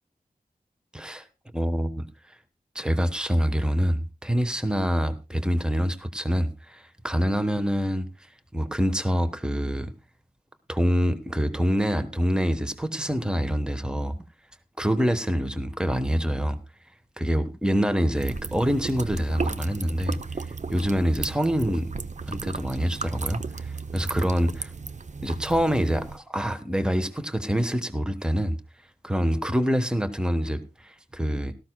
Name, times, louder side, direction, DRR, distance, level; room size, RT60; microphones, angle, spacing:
voice 1, 0.9-1.3 1.5-2.1 2.7-8.1 8.5-9.9 10.7-14.2 14.8-16.6 17.2-20.2 20.7-21.9 22.3-24.7 25.2-28.6 29.0-31.5, equal, 5° right, 1.1 m, -26 dB
sound 1, 18.2-26.2, right 4 dB, 50° right, 0.7 m, -35 dB
17.0 x 13.5 x 2.2 m
wide cardioid pair, 60°, 16 cm